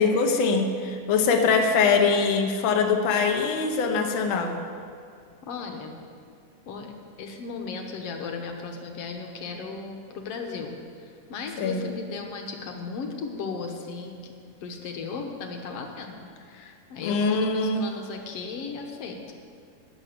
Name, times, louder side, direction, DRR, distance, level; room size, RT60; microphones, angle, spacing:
voice 1, 0.0-4.6 11.6-11.9 17.0-17.8, left 4 dB, 85° left, 3 dB, 1.1 m, -23 dB
voice 2, 5.5-5.9 6.7-14.3 14.6-16.2 16.5-19.3, left 4 dB, 60° left, 3 dB, 1.7 m, -36 dB
12.0 x 6.0 x 9.3 m, 2.2 s
omnidirectional pair, 3.6 m